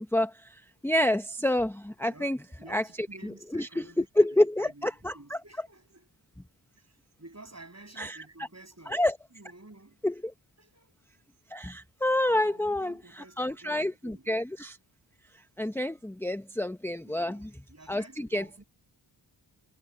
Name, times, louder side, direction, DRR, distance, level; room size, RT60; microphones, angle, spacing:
voice 1, 0.0-2.4 2.7-2.8 3.5-5.4 8.0-8.2 8.9-9.2 10.0-10.3 11.5-13.0 13.4-14.8 15.6-17.5 17.9-18.4, left 1 dB, 5° left, 0.8 m, -28 dB
voice 2, 2.1-6.1 6.7-9.0 9.3-10.1 10.6-11.0 12.3-14.4 17.0-18.6, right 2 dB, 35° right, 7.0 m, -52 dB
cardioid pair, 45°, 45 cm